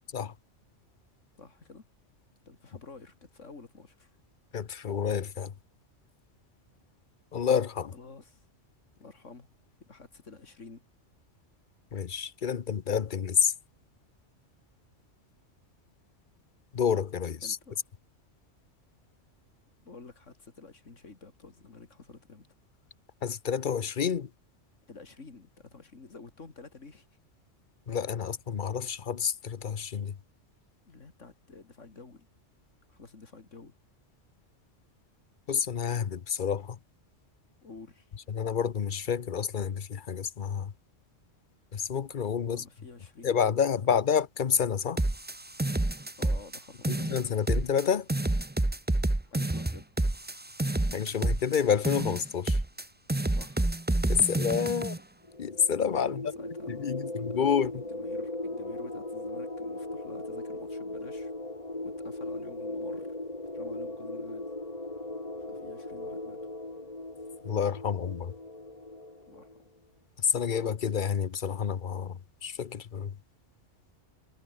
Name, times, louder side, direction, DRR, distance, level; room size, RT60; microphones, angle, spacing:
voice 1, 1.4-1.9 2.5-4.1 7.9-8.4 9.0-9.5 9.9-10.8 17.4-17.7 19.8-22.5 24.9-27.1 30.8-32.3 32.9-33.7 37.6-38.1 42.5-44.0 46.2-47.1 49.2-49.9 53.3-53.7 56.1-57.4 57.7-61.3 61.8-63.2 63.5-64.5 65.4-66.4 69.3-69.5, left 4 dB, 80° left, 3.1 m, -50 dB
voice 2, 4.5-5.5 7.3-7.9 11.9-13.5 16.7-17.6 23.2-24.3 27.9-30.2 35.5-36.8 38.3-40.7 41.7-42.6 43.2-45.0 46.9-48.1 50.9-52.6 54.1-55.0 55.4-56.3 56.7-57.8 67.4-68.3 70.2-73.1, left 7 dB, 45° left, 0.9 m, -29 dB
sound 1, 45.0-46.6 46.8-47.8 48.1-51.6 51.8-52.8 53.1-55.0, right 1 dB, 10° right, 0.7 m, -28 dB
sound 2, 55.2-69.6, left 2 dB, 30° left, 3.3 m, -38 dB
omnidirectional pair, 1.2 m